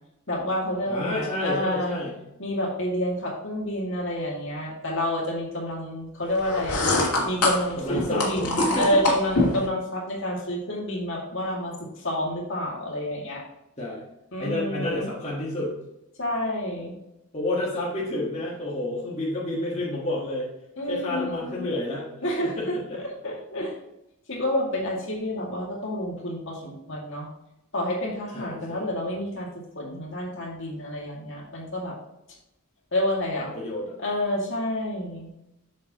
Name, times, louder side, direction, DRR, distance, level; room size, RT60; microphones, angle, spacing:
voice 1, 0.3-2.0 2.4-6.8 7.2-13.4 14.3-15.1 16.2-16.9 20.8-21.7 22.2-22.8 23.2-23.7 24.3-27.3 27.7-29.5 29.7-31.9 32.9-33.5 34.0-35.3, left 1 dB, 55° left, -2 dB, 2.3 m, -29 dB
voice 2, 0.9-2.2 7.8-9.1 13.8-14.0 14.4-15.8 17.3-20.5 20.9-23.0 28.3-28.9 33.4-33.9, left 1 dB, 30° left, -6 dB, 1.5 m, -30 dB
sound 1, 6.4-9.7, left 2 dB, 85° left, 1.9 m, -25 dB
7.3 x 6.6 x 3.0 m, 0.88 s
head